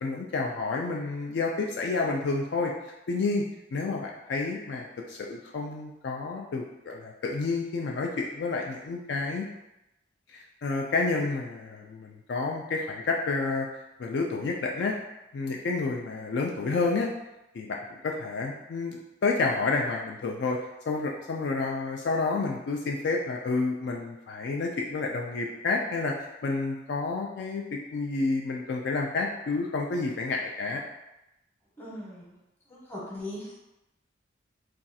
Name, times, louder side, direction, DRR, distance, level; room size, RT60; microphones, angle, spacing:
voice 1, 0.0-2.7 3.1-3.4 3.7-9.5 10.3-13.7 14.0-14.9 15.3-17.1 17.5-20.6 20.9-30.8, left 3 dB, 60° left, 0 dB, 0.3 m, -30 dB
voice 2, 31.8-32.3 32.7-33.5, left 1 dB, 10° left, -7 dB, 0.9 m, -39 dB
2.5 x 2.3 x 4.0 m, 0.93 s
head